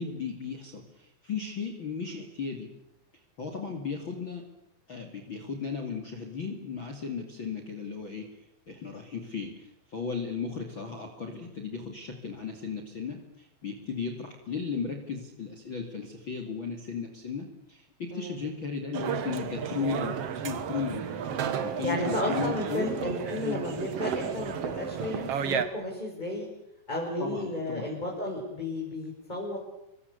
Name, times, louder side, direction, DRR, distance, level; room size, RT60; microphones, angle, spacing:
voice 1, 0.0-2.7 3.4-4.4 4.9-8.3 8.7-21.0 21.6-22.9 23.4-23.6 27.2-27.9, left 5 dB, 35° left, 3 dB, 2.8 m, -35 dB
sound 1, 18.9-25.7, right 8 dB, 60° right, 1.6 m, -32 dB
voice 2, 21.8-26.5 26.9-29.6, left 1 dB, 10° left, -2 dB, 5.3 m, -33 dB
28.5 x 23.5 x 8.3 m, 0.85 s
omnidirectional pair, 5.0 m